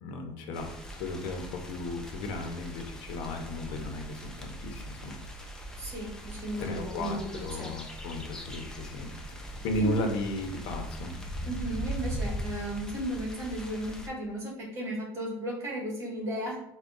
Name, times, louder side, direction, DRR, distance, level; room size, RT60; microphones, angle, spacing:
voice 1, 0.0-5.2 6.6-11.2, left 1 dB, 70° left, 4 dB, 0.7 m, -35 dB
sound 1, 0.5-14.1, right 1 dB, 5° left, 0.4 m, -40 dB
voice 2, 5.8-7.7 9.8-10.0 11.4-16.6, right 1 dB, 30° right, -3 dB, 1.4 m, -35 dB
3.4 x 2.2 x 3.8 m, 0.81 s
cardioid pair, 150°, 9 cm